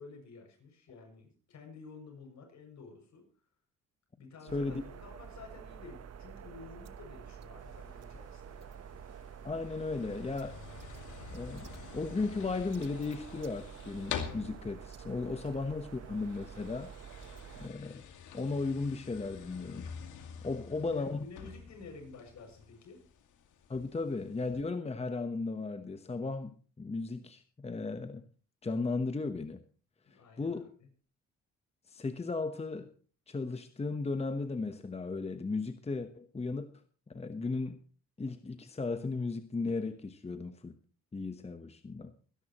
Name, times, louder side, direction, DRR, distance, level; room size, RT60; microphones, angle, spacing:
voice 1, 0.0-3.3 4.2-8.7 15.4-15.5 20.7-23.0 30.0-30.6, left 4 dB, 65° left, 2 dB, 7.0 m, -51 dB
sound 1, 4.5-17.7, right 8 dB, 55° right, 1.2 m, -48 dB
sound 2, 7.6-24.6, left 7 dB, 80° left, 2.3 m, -48 dB
voice 2, 9.4-10.6 11.3-16.9 17.6-18.0 18.3-19.9 20.4-21.3 23.7-28.2 28.6-29.6 30.4-30.7 31.9-32.9 33.3-36.7 37.1-37.8 38.2-40.7 41.1-42.1, left 3 dB, 20° left, 9 dB, 1.1 m, -35 dB
24.0 x 10.5 x 3.1 m, 0.39 s
cardioid pair, 90°, 30 cm